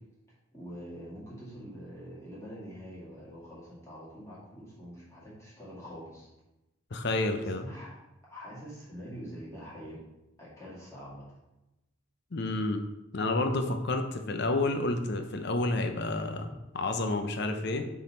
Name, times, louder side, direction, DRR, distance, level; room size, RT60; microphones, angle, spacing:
voice 1, 0.5-6.3 7.3-7.9 8.2-10.0 10.4-11.4, equal, 15° left, -8 dB, 2.4 m, -45 dB
voice 2, 6.9-7.6 12.3-12.8 13.1-17.8, left 2 dB, 55° left, 6 dB, 0.7 m, -30 dB
6.4 x 4.0 x 4.3 m, 0.96 s
head